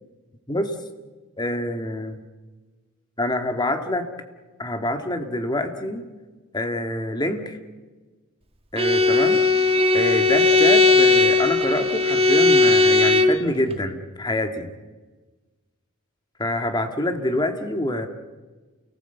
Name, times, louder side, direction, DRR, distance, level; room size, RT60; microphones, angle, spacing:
voice 1, 1.4-2.2 3.2-4.0 4.6-6.1 6.5-7.6 8.7-9.4 9.9-14.7 16.4-18.1, left 1 dB, 20° left, 6 dB, 1.8 m, -26 dB
Bowed string instrument, 8.8-13.4, left 3 dB, 25° right, 1.5 m, -17 dB
29.5 x 18.5 x 8.1 m, 1.3 s
head